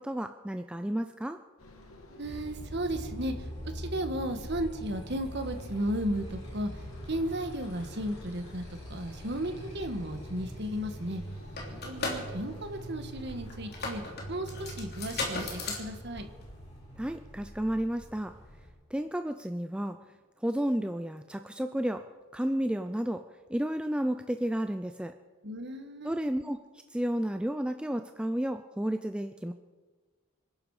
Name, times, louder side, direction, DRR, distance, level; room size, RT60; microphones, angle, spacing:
voice 1, 0.0-1.4 17.0-18.3 18.9-20.0 20.4-22.1 22.3-23.2 23.5-25.1 26.0-26.6 26.9-29.5, equal, 5° right, 7 dB, 0.4 m, -32 dB
sound 1, 1.6-14.1, left 1 dB, 80° left, 2.3 m, -52 dB
voice 2, 2.1-6.8 7.1-8.6 8.9-11.2 11.8-14.0 14.3-16.3 25.4-26.2, right 1 dB, 50° right, 7 dB, 1.6 m, -34 dB
Motorcycle, 2.2-18.7, equal, 30° left, 6.3 m, -43 dB
sound 2, 10.8-10.9 11.1-16.8, left 3 dB, 45° left, 3.3 m, -37 dB
26.5 x 11.0 x 4.9 m, 1.4 s
head